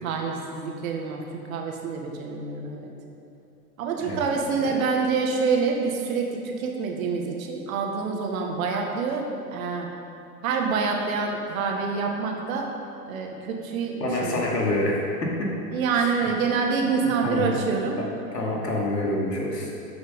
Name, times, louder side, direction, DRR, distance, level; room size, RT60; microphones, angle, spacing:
voice 1, 0.0-2.9 3.8-9.9 10.4-12.7 13.1-14.4 15.7-18.0, right 5 dB, 55° right, 1 dB, 1.8 m, -27 dB
voice 2, 14.0-15.5 16.0-16.1 17.0-17.5 18.0-18.1 18.3-19.7, left 1 dB, 80° left, -2 dB, 2.4 m, -27 dB
13.5 x 6.4 x 5.3 m, 2.8 s
figure-of-eight pair, 95°, 49 cm